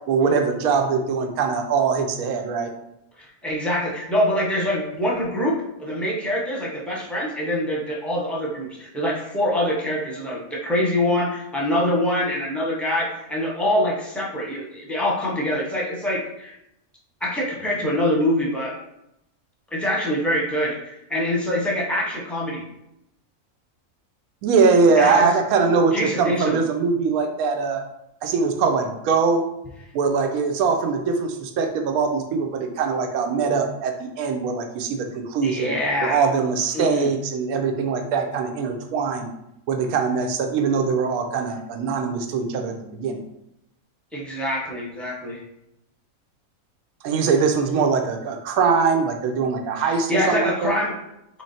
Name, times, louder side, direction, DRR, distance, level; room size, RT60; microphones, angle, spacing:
voice 1, 0.1-2.7 24.4-27.8 28.2-29.4 29.9-35.7 36.0-39.3 39.7-43.2 47.0-50.7, right 5 dB, 80° right, 5 dB, 1.1 m, -22 dB
voice 2, 3.2-16.5 17.2-18.7 19.7-22.6 25.0-25.3 25.9-26.6 35.4-36.2 36.7-37.1 44.1-45.4 49.8-50.9, left 1 dB, ahead, -3 dB, 0.6 m, -24 dB
3.7 x 3.2 x 4.1 m, 0.83 s
omnidirectional pair, 1.5 m